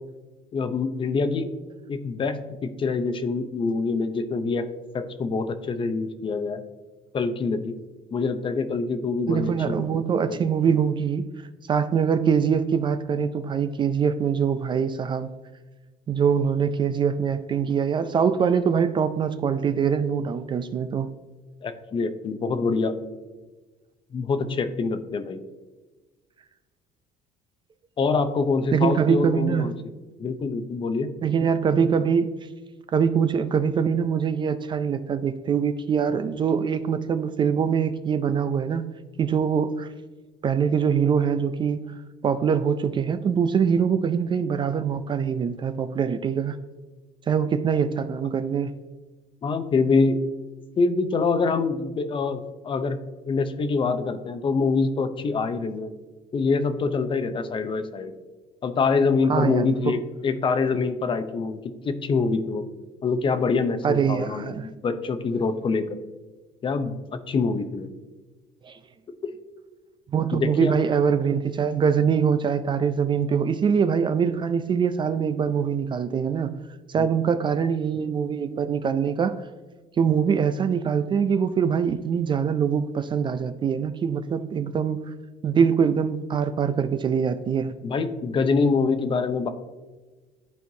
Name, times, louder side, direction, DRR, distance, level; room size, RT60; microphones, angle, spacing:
voice 1, 0.5-1.5 1.9-4.7 4.9-6.6 7.1-7.8 8.1-10.4 21.6-23.0 24.1-25.4 28.0-29.7 30.2-31.1 49.4-50.2 50.8-53.0 53.3-55.9 56.3-58.1 58.6-61.6 61.8-62.6 63.0-65.9 66.6-67.0 67.3-67.9 69.2-69.3 70.3-70.7 77.0-77.1 87.8-89.5, left 4 dB, 35° left, 10 dB, 0.6 m, -25 dB
voice 2, 9.3-11.3 11.6-15.3 16.1-21.1 28.7-29.6 31.2-32.3 32.9-38.8 39.2-39.9 40.4-42.0 42.2-46.6 47.3-48.8 59.3-59.9 63.8-64.7 68.6-68.8 70.1-76.5 76.9-79.5 80.0-85.1 85.4-87.7, right 7 dB, 30° right, 11 dB, 0.4 m, -23 dB
12.0 x 4.5 x 2.7 m, 1.3 s
cardioid pair, 120°, 16 cm